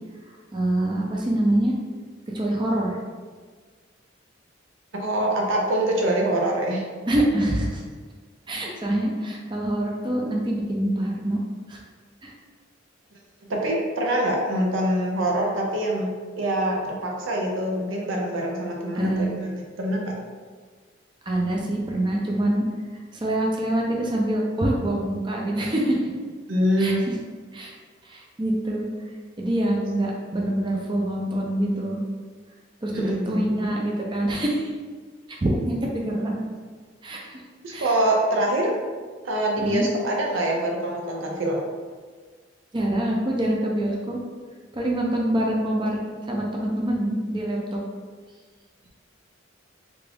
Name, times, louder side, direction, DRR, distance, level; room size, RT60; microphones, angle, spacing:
voice 1, 0.5-1.7 2.3-3.0 7.1-7.8 8.5-11.4 11.7-11.8 12.2-12.3 18.9-19.3 21.3-22.6 23.1-26.0 26.8-26.9 27.5-27.7 28.0-28.9 29.4-32.0 32.8-34.7 35.4-36.4 37.0-37.4 37.7-37.9 39.6-39.9 42.7-44.2 44.7-47.8, right 1 dB, 25° right, -2 dB, 0.5 m, -25 dB
voice 2, 4.9-6.9 13.5-20.1 26.5-27.0 32.9-33.5 37.6-38.7 39.2-41.6, right 1 dB, 85° right, -1 dB, 0.5 m, -24 dB
3.5 x 2.4 x 3.4 m, 1.5 s
head